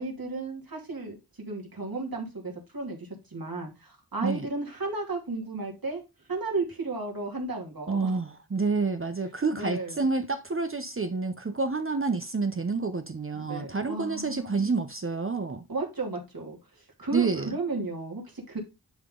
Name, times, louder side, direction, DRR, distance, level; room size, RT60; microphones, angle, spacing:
voice 1, 0.0-6.0 6.3-8.2 9.6-10.1 13.3-14.8 15.7-18.6, right 3 dB, 60° right, 2.8 m, -34 dB
voice 2, 7.9-15.6 17.1-17.5, right 4 dB, 35° right, 0.6 m, -28 dB
10.0 x 3.7 x 3.7 m
wide cardioid pair, 50°, 39 cm